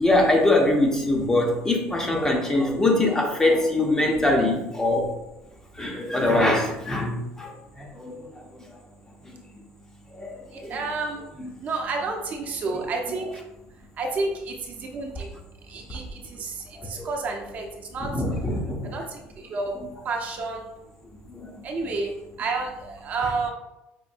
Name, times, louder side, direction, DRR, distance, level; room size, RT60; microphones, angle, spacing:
voice 1, 0.0-5.1 5.8-8.4 10.2-10.8 11.4-11.5 14.0-14.1 16.8-17.1 18.1-18.9 21.3-21.6, left 2 dB, 15° left, 1 dB, 0.6 m, -23 dB
voice 2, 10.5-11.2 11.6-13.3 14.0-15.3 15.7-18.1 18.9-19.7 20.0-20.7 21.6-22.1 22.4-23.5, right 3 dB, 40° right, 2 dB, 0.6 m, -30 dB
5.1 x 2.6 x 2.5 m, 0.93 s
cardioid pair, 140°, 4 cm